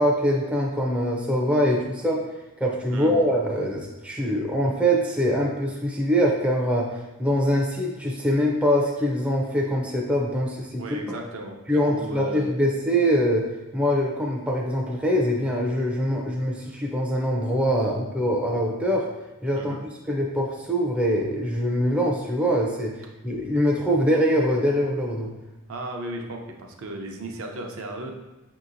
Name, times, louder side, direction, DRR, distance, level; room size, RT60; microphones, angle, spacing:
voice 1, 0.0-2.2 2.6-11.2 11.7-13.5 13.7-19.1 19.4-22.9 23.2-25.3, equal, 5° right, -2 dB, 0.3 m, -23 dB
voice 2, 10.8-11.6 11.9-12.4 19.5-19.8 25.7-28.2, right 1 dB, 75° right, 2 dB, 0.6 m, -35 dB
5.4 x 2.8 x 2.5 m, 1.1 s
head